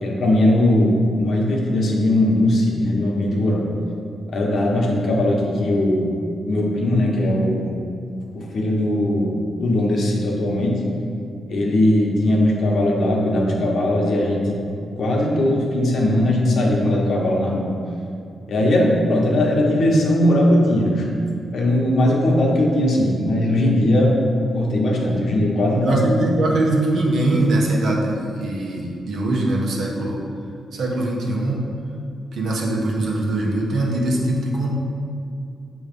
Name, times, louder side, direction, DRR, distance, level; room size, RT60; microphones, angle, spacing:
voice 1, 0.0-3.7 4.3-6.1 6.5-7.8 8.3-10.8 11.5-14.6 15.0-17.8 18.5-21.1 21.5-24.2 24.5-26.3, left 1 dB, 65° left, -2 dB, 1.1 m, -19 dB
voice 2, 25.8-30.2 30.7-31.6 32.3-34.7, right 2 dB, 70° right, -2 dB, 1.0 m, -22 dB
6.8 x 3.1 x 5.2 m, 2.5 s
cardioid pair, 120°, 0 cm